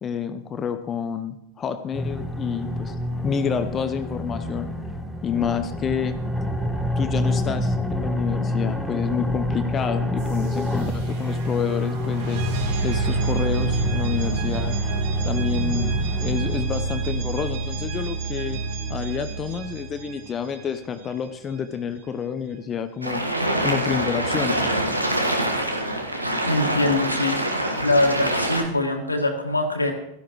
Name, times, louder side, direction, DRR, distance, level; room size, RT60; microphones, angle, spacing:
voice 1, 0.0-2.9 3.2-4.7 5.2-6.2 7.0-12.4 12.8-14.8 15.2-18.6 18.9-23.2 23.6-24.6, left 7 dB, 25° left, 10 dB, 0.8 m, -28 dB
sound 1, 1.9-16.6, left 1 dB, ahead, 1.4 m, -28 dB
sound 2, 10.2-21.0, right 3 dB, 55° right, 3.2 m, -28 dB
sound 3, 23.0-28.6, right 1 dB, 85° right, 1.5 m, -25 dB
voice 2, 26.4-27.4 27.8-29.9, left 2 dB, 85° left, 3 dB, 1.8 m, -23 dB
17.0 x 13.0 x 3.1 m, 0.80 s
figure-of-eight pair, 90°, 0 cm